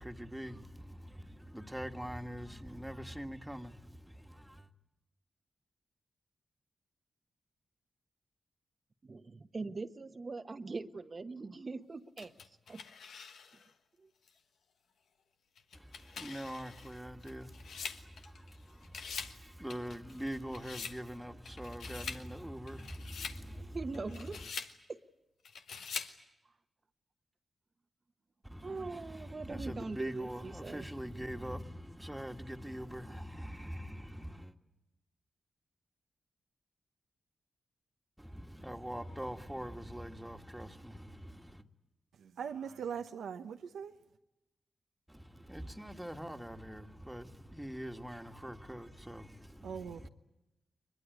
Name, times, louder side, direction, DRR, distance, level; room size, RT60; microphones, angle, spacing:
voice 1, 0.0-4.7 15.7-23.8 24.3-24.4 28.4-34.5 38.2-41.6 45.1-50.1, equal, 5° right, 1.7 m, -44 dB
voice 2, 9.0-12.9 14.0-14.1 23.2-24.5 24.9-25.0 28.6-30.8, right 3 dB, 45° right, 1.1 m, -42 dB
sound 1, 12.2-13.7 14.3-14.4 15.6-18.6 18.8-19.4 19.7-21.0 21.4-22.2 22.7-23.4 23.9-24.7 25.4-26.2, left 6 dB, 85° left, 1.3 m, -44 dB
voice 3, 42.2-43.9 49.6-50.1, right 7 dB, 90° right, 0.9 m, -41 dB
22.5 x 21.0 x 9.5 m
cardioid pair, 50°, 0 cm